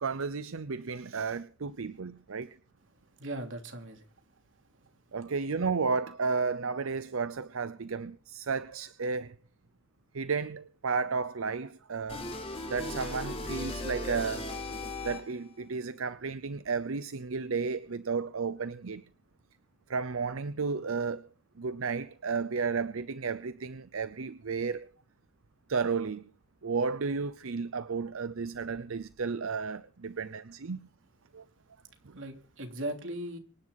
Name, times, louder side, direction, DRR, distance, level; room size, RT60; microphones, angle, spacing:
voice 1, 0.0-2.5 5.1-9.4 10.1-12.2 12.7-14.5 15.0-19.0 19.9-21.2 21.6-24.9 25.7-26.2 26.6-30.9 31.3-31.4 32.1-32.2, right 5 dB, 85° right, 0.7 m, -33 dB
voice 2, 3.2-4.1 32.1-33.4, right 1 dB, 65° right, 3.2 m, -38 dB
sound 1, 12.1-15.5, left 2 dB, 30° left, 3.9 m, -37 dB
25.5 x 10.5 x 4.1 m
head